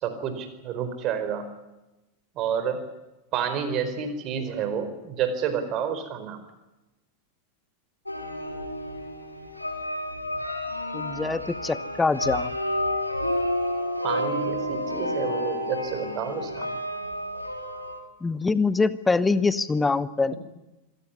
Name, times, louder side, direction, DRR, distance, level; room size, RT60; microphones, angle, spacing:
voice 1, 0.0-1.5 2.3-2.8 3.3-6.4 14.0-16.7 17.3-17.4, right 7 dB, 35° right, 9 dB, 4.6 m, -29 dB
sound 1, 8.1-18.0, left 1 dB, 85° left, 3.4 m, -30 dB
voice 2, 10.9-12.5 18.2-20.3, left 4 dB, 10° left, 17 dB, 1.0 m, -24 dB
26.0 x 17.0 x 9.8 m, 1.0 s
figure-of-eight pair, 90°, 0 cm